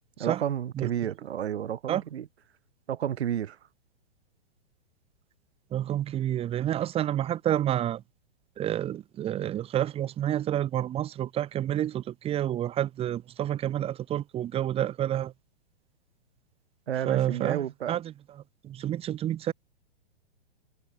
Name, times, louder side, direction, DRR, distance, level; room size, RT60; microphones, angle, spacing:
voice 1, 0.2-2.3 2.9-3.6 16.9-18.0, right 10 dB, 70° right, 3.5 m, -31 dB
voice 2, 5.7-8.0 8.6-15.3 17.1-17.6 17.9-18.1 18.6-19.5, right 11 dB, 15° right, 2.1 m, -29 dB
hypercardioid pair, 155°, 33 cm